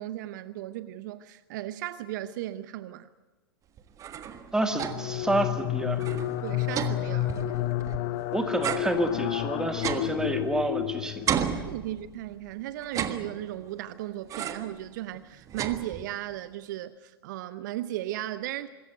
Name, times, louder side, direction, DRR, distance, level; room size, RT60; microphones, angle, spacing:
voice 1, 0.0-3.1 6.4-7.3 11.5-18.7, right 14 dB, 50° right, 0.8 m, -36 dB
sound 1, 3.8-5.2 5.6-5.7 5.9-8.2 8.6-10.8 11.3-12.3 12.8-13.7 14.3-14.8 15.2-16.3, right 8 dB, 25° right, 1.5 m, -34 dB
voice 2, 4.5-6.0 8.3-11.3, right 1 dB, 5° right, 1.9 m, -29 dB
sound 2, 4.7-11.6, left 13 dB, 40° left, 0.9 m, -30 dB
25.0 x 14.5 x 9.3 m
figure-of-eight pair, 105°, 13 cm